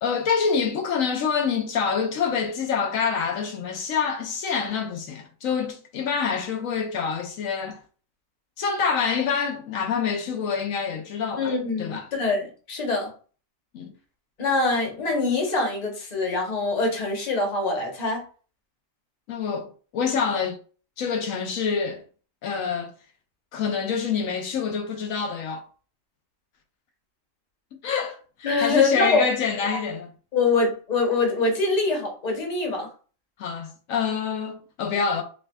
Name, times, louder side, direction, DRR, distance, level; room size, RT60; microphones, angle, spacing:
voice 1, 0.0-7.8 8.6-11.5 11.8-12.1 13.7-13.9 19.3-20.6 21.0-22.0 22.4-22.9 23.5-25.6 27.8-30.1 33.4-35.2, left 6 dB, 85° left, 1.1 m, -26 dB
voice 2, 11.4-13.1 14.4-18.2 28.4-29.3 30.3-32.9, left 3 dB, 35° left, 1.0 m, -24 dB
5.1 x 2.3 x 2.2 m
omnidirectional pair, 1.4 m